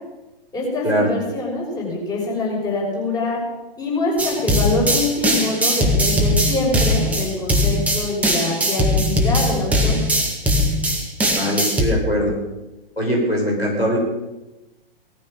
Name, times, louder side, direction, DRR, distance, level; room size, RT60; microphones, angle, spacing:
voice 1, 0.5-3.4 3.8-10.0, left 2 dB, 15° left, -3 dB, 5.9 m, -24 dB
sound 1, 4.2-11.9, equal, 5° right, 2.1 m, -20 dB
voice 2, 11.3-12.3 13.0-14.0, equal, 90° left, 0 dB, 5.7 m, -21 dB
18.5 x 14.0 x 5.3 m, 1.1 s
figure-of-eight pair, 115°, 30 cm